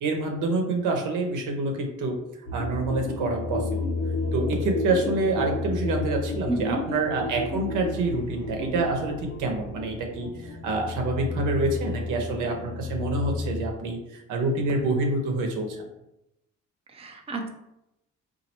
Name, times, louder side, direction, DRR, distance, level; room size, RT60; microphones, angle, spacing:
voice 1, 0.0-2.1 2.5-3.6 4.3-15.8, right 2 dB, 85° right, 2 dB, 0.8 m, -27 dB
sound 1, 2.5-13.7, left 3 dB, 65° left, 1.1 m, -32 dB
voice 2, 6.5-6.8 16.9-17.5, right 3 dB, 20° right, 2 dB, 0.6 m, -31 dB
4.1 x 2.6 x 2.8 m, 0.86 s
cardioid pair, 90°, 30 cm